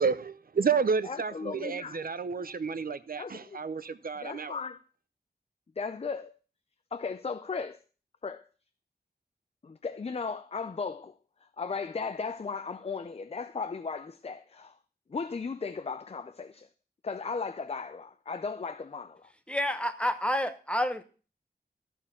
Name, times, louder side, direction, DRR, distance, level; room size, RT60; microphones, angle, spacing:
voice 1, 0.0-4.5, right 5 dB, 60° right, 0.7 m, -30 dB
voice 2, 1.0-2.0 3.2-3.6 4.2-4.8 5.8-6.3 6.9-7.8 8.2-8.5 9.6-11.2 11.6-14.8 15.1-16.7 17.0-19.3, left 5 dB, 40° left, 0.5 m, -36 dB
voice 3, 19.5-21.0, left 1 dB, 5° left, 0.9 m, -29 dB
13.5 x 4.5 x 7.2 m
wide cardioid pair, 105°, 17 cm